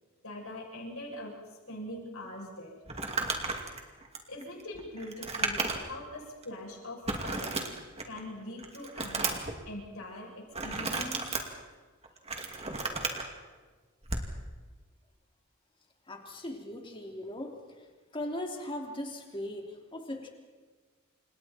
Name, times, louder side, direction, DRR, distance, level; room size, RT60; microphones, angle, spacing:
voice 1, 0.2-1.3 1.7-2.8 4.3-7.6 8.0-9.3 9.7-11.3, left 1 dB, 70° left, -1 dB, 7.6 m, -42 dB
Crumpling crinkling, 2.9-6.0 6.4-6.5 7.1-8.2 8.6-9.5 10.5-11.4 12.0-13.2 14.0-14.3, right 3 dB, 30° right, 2.6 m, -33 dB
voice 2, 16.1-17.5 18.1-20.3, left 1 dB, 25° left, 1 dB, 3.3 m, -38 dB
29.5 x 27.5 x 4.5 m, 1.4 s
head